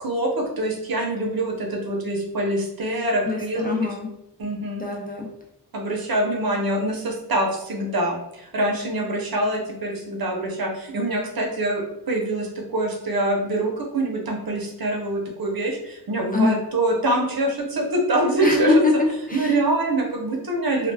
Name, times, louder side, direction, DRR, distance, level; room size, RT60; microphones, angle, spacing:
voice 1, 0.0-3.7 4.4-4.8 5.7-18.7 19.3-20.9, right 1 dB, 60° right, 1 dB, 0.7 m, -25 dB
voice 2, 3.2-4.1 4.8-5.3 16.3-16.6 18.4-19.6, left 3 dB, 25° left, -1 dB, 0.4 m, -22 dB
2.2 x 2.1 x 3.2 m, 0.83 s
wide cardioid pair, 85°, 40 cm